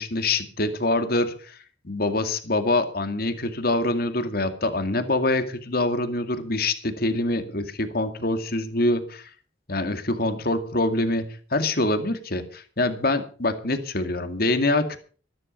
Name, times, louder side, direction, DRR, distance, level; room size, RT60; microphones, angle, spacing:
voice 1, 0.0-1.6 1.8-9.3 9.7-15.0, left 2 dB, 55° left, 9 dB, 2.1 m, -25 dB
14.0 x 13.0 x 5.5 m, 0.41 s
head